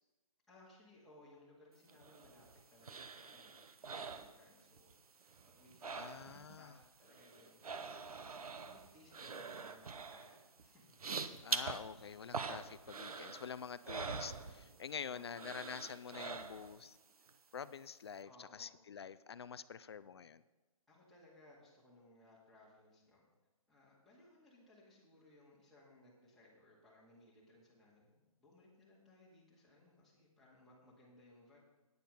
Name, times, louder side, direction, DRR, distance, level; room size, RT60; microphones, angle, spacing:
voice 1, 0.5-8.2 8.6-10.9 15.0-15.5 18.2-18.7 20.9-23.2 23.7-31.6, left 1 dB, ahead, -8 dB, 2.1 m, -64 dB
sound 1, 1.9-4.9 5.2-6.6 6.8-15.0 15.3-16.9 17.3-17.4, right 4 dB, 80° right, 0.9 m, -45 dB
voice 2, 5.9-6.7 11.4-17.0 17.5-20.4, left 7 dB, 45° left, 15 dB, 0.4 m, -47 dB
9.4 x 9.1 x 5.3 m, 1.2 s
hypercardioid pair, 160°, 19 cm